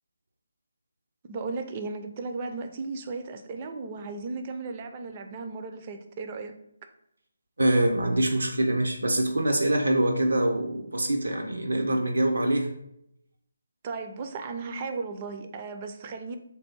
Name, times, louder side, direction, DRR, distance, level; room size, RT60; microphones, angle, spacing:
voice 1, 1.3-6.5 13.8-16.4, right 4 dB, 30° right, 6 dB, 0.4 m, -35 dB
voice 2, 7.6-12.7, right 1 dB, 80° right, 2 dB, 0.6 m, -24 dB
3.3 x 2.5 x 4.3 m, 0.76 s
figure-of-eight pair, 150°, 0 cm